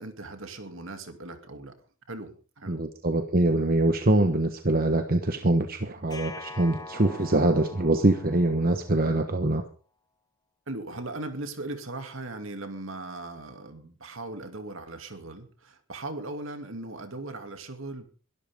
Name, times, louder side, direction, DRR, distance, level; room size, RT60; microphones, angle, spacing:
voice 1, 0.0-1.7 2.1-2.8 6.8-6.9 10.7-18.1, right 2 dB, 65° right, 7 dB, 2.6 m, -38 dB
voice 2, 2.7-9.6, right 2 dB, 45° right, 6 dB, 1.2 m, -24 dB
sound 1, 6.1-9.2, left 3 dB, 20° left, 1.7 m, -44 dB
22.5 x 12.5 x 3.7 m, 0.38 s
head